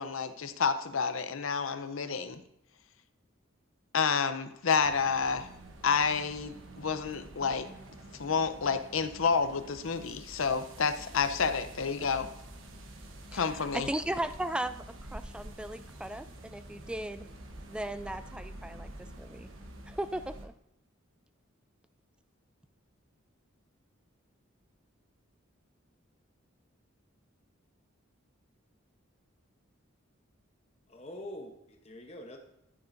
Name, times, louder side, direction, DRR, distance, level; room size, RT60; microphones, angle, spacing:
voice 1, 0.0-2.4 3.9-5.5 5.8-7.7 8.2-12.3 13.3-13.9, left 5 dB, 80° left, 10 dB, 0.7 m, -29 dB
sound 1, 4.7-20.4, right 1 dB, 70° right, 1.1 m, -48 dB
voice 2, 13.3-17.2 17.7-19.5 19.9-20.5, right 1 dB, 5° right, 11 dB, 0.3 m, -37 dB
voice 3, 30.9-32.4, left 1 dB, 30° left, 3 dB, 0.9 m, -44 dB
13.0 x 7.0 x 2.6 m, 0.80 s
head